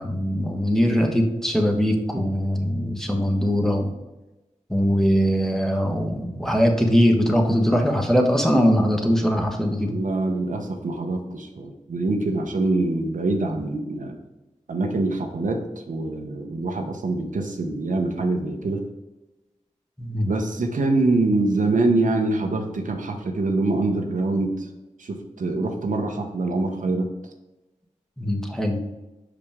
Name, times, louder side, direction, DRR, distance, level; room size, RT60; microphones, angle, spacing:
voice 1, 0.0-3.9 4.7-10.0 20.0-20.3 28.2-28.8, equal, 5° left, 2 dB, 1.2 m, -21 dB
voice 2, 9.9-14.2 14.7-18.8 20.2-24.7 25.0-27.1, right 2 dB, 85° right, 3 dB, 0.9 m, -24 dB
6.1 x 5.0 x 3.6 m, 1.0 s
cardioid pair, 55°, 13 cm